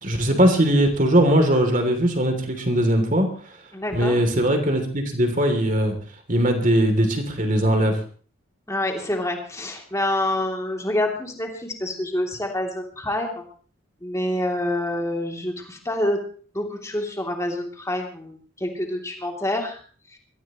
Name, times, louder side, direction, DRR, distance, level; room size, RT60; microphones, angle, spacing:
voice 1, 0.0-3.3 3.9-6.0 6.3-8.0, right 1 dB, 40° right, 5 dB, 3.0 m, -20 dB
voice 2, 3.7-4.2 8.7-13.5 14.0-16.2 16.5-19.8 20.1-20.2, left 1 dB, 15° left, 2 dB, 2.9 m, -27 dB
23.0 x 14.5 x 3.1 m, 0.41 s
head